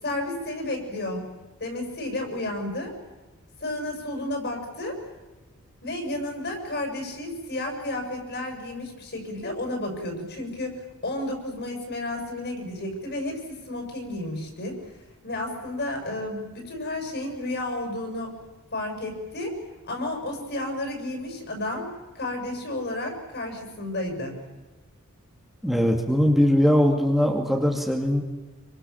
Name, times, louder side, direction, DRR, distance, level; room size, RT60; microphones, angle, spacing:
voice 1, 0.0-1.2 1.6-2.9 3.6-5.0 5.8-14.8 15.2-18.3 18.7-19.6 19.8-21.9 22.1-24.4, left 1 dB, 50° left, 3 dB, 6.9 m, -32 dB
voice 2, 25.6-28.2, equal, ahead, 0 dB, 2.4 m, -21 dB
27.5 x 25.0 x 7.2 m, 1.2 s
head